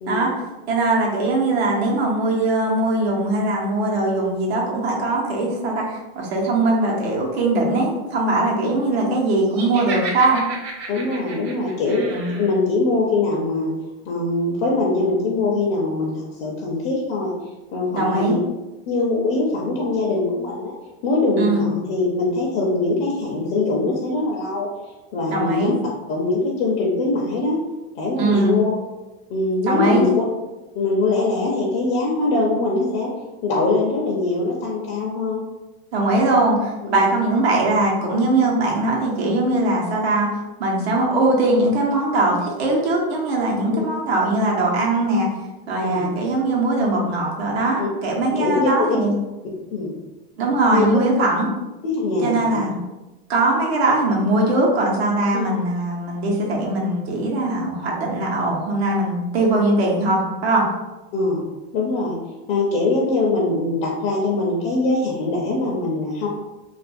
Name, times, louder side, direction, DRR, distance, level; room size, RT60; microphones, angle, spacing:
voice 1, 0.7-10.4 12.1-12.3 17.9-18.4 21.4-21.7 25.3-25.7 28.2-28.6 29.6-30.1 35.9-45.3 45.7-49.1 50.4-51.5 52.2-52.8 53.3-60.7, right 2 dB, 85° right, -2 dB, 0.9 m, -21 dB
Laughter, 9.5-12.5, right 3 dB, 50° right, 0.7 m, -32 dB
voice 2, 10.9-12.0 12.4-13.7 14.1-17.3 17.7-18.4 18.9-20.7 21.0-24.7 25.1-25.7 26.1-27.6 27.9-28.8 29.3-30.1 30.7-33.1 33.4-35.4 36.8-37.0 43.7-43.8 45.8-46.1 47.8-47.9 48.4-48.9 49.7-49.9 50.7-50.8 51.8-52.6 55.3-55.5 61.1-61.4 61.7-62.2 62.5-66.3, left 3 dB, 40° left, -4 dB, 0.5 m, -22 dB
2.5 x 2.3 x 2.5 m, 1.1 s
supercardioid pair, 135°, 31 cm